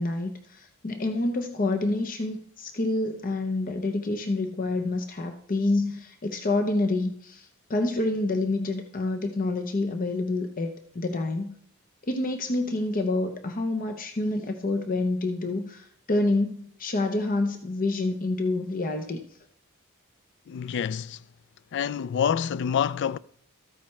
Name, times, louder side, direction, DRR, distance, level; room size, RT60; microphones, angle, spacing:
voice 1, 0.0-11.5 12.1-19.2, left 2 dB, 40° left, 0.7 m, -28 dB
voice 2, 20.5-21.2 21.7-23.2, left 8 dB, 55° left, 0.3 m, -27 dB
13.5 x 8.9 x 3.2 m
head